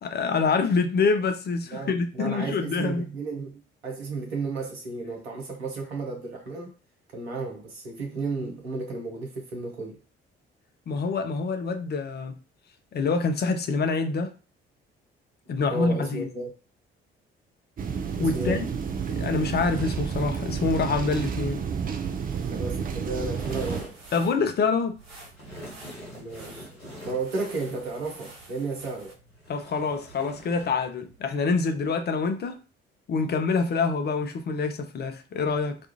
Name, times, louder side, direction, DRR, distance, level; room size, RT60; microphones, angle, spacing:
voice 1, 0.0-3.0 10.9-12.3 12.9-14.3 15.5-16.3 18.2-18.6 19.1-21.6 24.1-25.0 29.5-32.6 33.1-35.8, left 4 dB, 35° left, 0.5 m, -26 dB
voice 2, 1.7-6.7 7.1-10.0 15.7-16.5 18.2-18.6 22.5-24.0 26.1-26.8 27.0-29.1, right 3 dB, 80° right, 0.8 m, -33 dB
sound 1, 17.8-23.8, right 6 dB, 30° right, 0.4 m, -30 dB
sound 2, 23.2-31.9, equal, 80° left, 1.0 m, -46 dB
sound 3, 23.5-29.1, right 2 dB, 55° right, 1.0 m, -50 dB
2.4 x 2.3 x 2.9 m
figure-of-eight pair, 45°, 30 cm